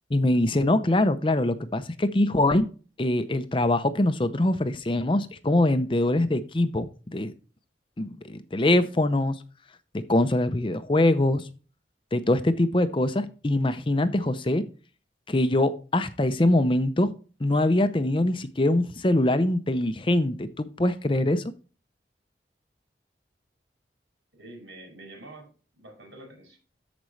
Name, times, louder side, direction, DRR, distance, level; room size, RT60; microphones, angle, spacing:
voice 1, 0.1-2.7 3.0-7.3 8.0-9.4 9.9-11.5 12.1-14.7 15.3-17.1 17.4-21.4, left 1 dB, 30° left, 12 dB, 0.6 m, -23 dB
voice 2, 24.3-26.6, right 2 dB, 80° right, 1 dB, 5.3 m, -46 dB
13.5 x 5.1 x 3.2 m, 0.36 s
head